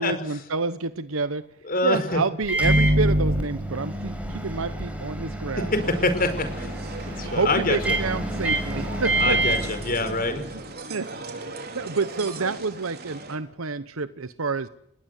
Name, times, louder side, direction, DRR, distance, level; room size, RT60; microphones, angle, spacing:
voice 1, 0.0-1.4 1.8-5.7 7.0-9.4 10.9-11.1 11.7-14.7, right 4 dB, 75° right, 13 dB, 1.1 m, -28 dB
voice 2, 1.6-2.2 5.6-6.7 7.0-8.0 9.2-10.4, left 2 dB, 45° left, 9 dB, 5.1 m, -25 dB
Microwave oven, 2.4-10.6, right 1 dB, 5° right, 6.2 m, -26 dB
sound 1, 5.7-13.4, right 3 dB, 50° right, 4.5 m, -38 dB
29.5 x 20.5 x 8.3 m, 0.72 s
head